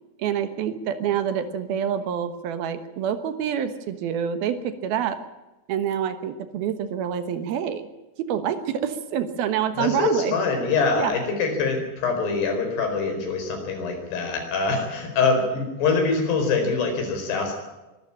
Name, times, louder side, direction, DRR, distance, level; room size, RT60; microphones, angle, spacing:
voice 1, 0.2-5.2 5.7-7.8 8.2-10.3 11.0-11.1, right 9 dB, 70° right, 10 dB, 3.0 m, -27 dB
voice 2, 9.8-17.5, left 4 dB, 80° left, 4 dB, 6.5 m, -24 dB
23.0 x 13.5 x 8.7 m, 1.1 s
omnidirectional pair, 4.7 m